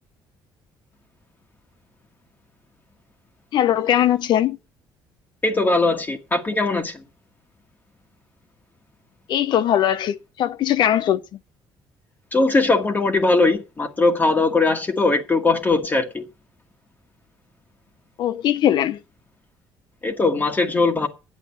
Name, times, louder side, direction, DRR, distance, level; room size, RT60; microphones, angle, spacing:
voice 1, 3.5-4.6 9.3-11.4 18.2-19.0, left 11 dB, 60° left, 0.7 m, -20 dB
voice 2, 5.4-7.0 12.3-16.2 20.0-21.1, left 3 dB, 20° left, 1.4 m, -20 dB
9.6 x 7.9 x 7.0 m
cardioid pair, 125°, 9 cm